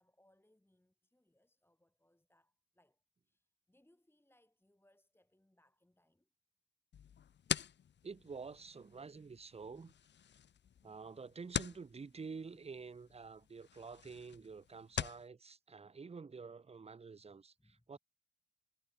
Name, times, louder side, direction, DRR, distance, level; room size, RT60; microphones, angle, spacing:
voice 1, 0.0-6.3 17.3-18.0, left 1 dB, 5° left, 4.0 m, -74 dB
sound 1, 6.9-15.3, left 9 dB, 35° left, 0.5 m, -45 dB
voice 2, 8.0-9.9 10.8-17.5 17.9-18.0, right 5 dB, 20° right, 0.6 m, -49 dB
cardioid pair, 80°, 32 cm